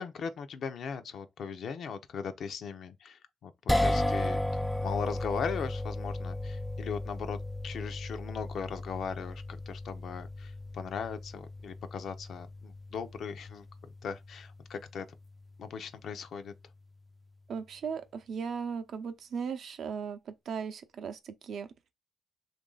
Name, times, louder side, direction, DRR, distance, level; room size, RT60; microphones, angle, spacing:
voice 1, 0.0-15.1 15.6-16.5, left 6 dB, 65° left, 0.5 m, -39 dB
sound 1, 3.7-16.0, left 1 dB, 5° left, 0.3 m, -35 dB
voice 2, 17.5-21.7, right 6 dB, 60° right, 0.5 m, -37 dB
3.0 x 2.6 x 3.8 m
cardioid pair, 90°, 0 cm